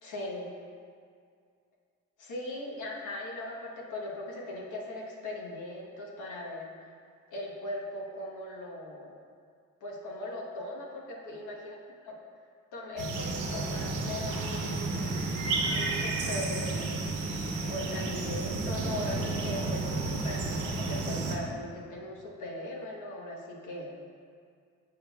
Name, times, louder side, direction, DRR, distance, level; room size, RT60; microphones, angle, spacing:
voice 1, 0.0-0.5 2.2-6.9 7.3-9.2 9.8-11.7 12.1-12.2 12.7-15.0 15.7-17.0 17.7-23.9, left 1 dB, 80° left, -2 dB, 1.1 m, -39 dB
sound 1, 13.0-21.4, right 3 dB, 80° right, 0.9 m, -32 dB
7.4 x 6.6 x 2.3 m, 2.2 s
cardioid pair, 90°, 30 cm